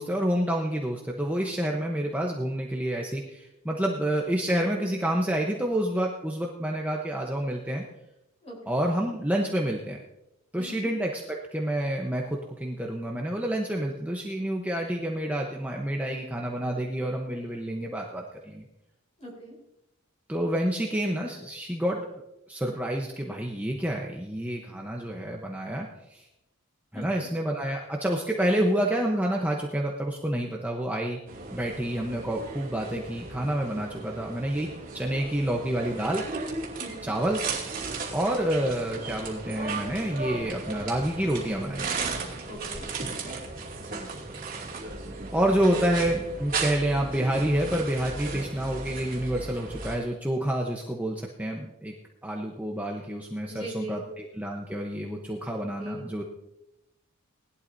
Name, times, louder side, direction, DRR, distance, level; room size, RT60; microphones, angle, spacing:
voice 1, 0.0-7.8 8.7-10.0 10.5-11.2 11.5-18.7 20.3-22.0 22.5-26.3 26.9-31.2 31.5-36.2 37.0-37.4 38.1-41.9 43.9-44.1 45.3-51.9 52.2-56.2, right 1 dB, 5° right, -1 dB, 0.8 m, -28 dB
voice 2, 8.4-8.8 10.6-10.9 19.2-19.5 26.9-27.3 36.8-37.1 42.5-42.8 45.6-45.8 53.5-54.0 55.8-56.0, right 2 dB, 30° left, -3 dB, 4.2 m, -40 dB
sound 1, 31.3-50.0, right 3 dB, 40° right, 2.6 m, -36 dB
19.0 x 11.5 x 2.7 m, 0.87 s
head